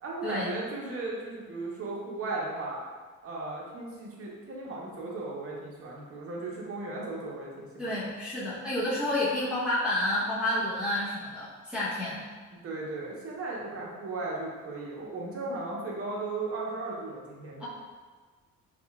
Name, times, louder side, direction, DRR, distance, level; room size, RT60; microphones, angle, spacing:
voice 1, 0.0-2.8 3.2-8.0 12.6-17.7, right 2 dB, 50° right, -4 dB, 0.8 m, -36 dB
voice 2, 7.8-12.2 17.6-17.7, left 1 dB, 5° right, -10 dB, 0.8 m, -30 dB
3.6 x 2.2 x 2.2 m, 1.4 s
cardioid pair, 90°, 30 cm